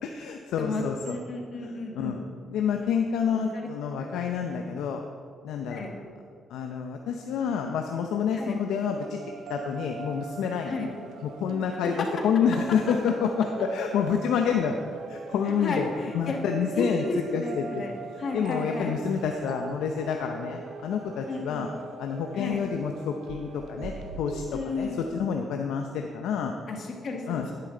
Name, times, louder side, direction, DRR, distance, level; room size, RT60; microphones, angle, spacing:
voice 1, 0.0-1.2 2.0-2.2 2.5-5.0 5.4-5.9 6.5-9.2 9.5-10.8 11.2-14.8 15.1-17.0 17.3-17.8 18.3-21.7 22.0-26.5 27.3-27.5, left 7 dB, 85° left, 4 dB, 0.6 m, -28 dB
voice 2, 0.6-2.2 3.3-3.7 4.0-4.1 5.7-5.9 8.3-8.6 10.7-10.9 11.8-12.1 15.6-16.4 16.7-18.9 21.3-21.7 22.3-22.6 24.5-25.0 26.7-27.5, left 3 dB, 55° left, 2 dB, 1.8 m, -33 dB
sound 1, 8.9-25.3, right 5 dB, 75° right, 0.7 m, -41 dB
11.0 x 10.0 x 3.8 m, 2.2 s
cardioid pair, 90°, 0 cm